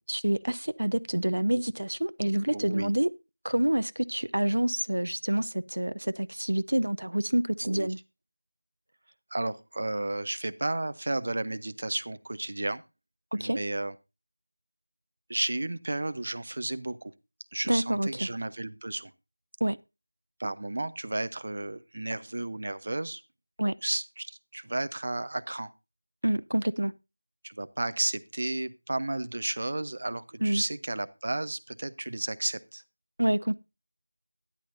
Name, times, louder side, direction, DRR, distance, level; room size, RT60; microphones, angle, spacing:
voice 1, 0.1-3.1 3.4-8.0 13.3-13.6 17.7-18.3 19.6-19.8 23.6-23.7 26.2-26.9 30.4-30.6 33.2-33.5, right 1 dB, 80° right, 0.6 m, -27 dB
voice 2, 2.5-2.9 7.6-7.9 9.3-12.8 13.3-13.9 15.3-17.1 17.5-19.1 20.4-23.2 23.8-25.7 27.4-32.8, right 2 dB, 40° right, 0.7 m, -33 dB
13.0 x 10.5 x 2.6 m
figure-of-eight pair, 175°, 0 cm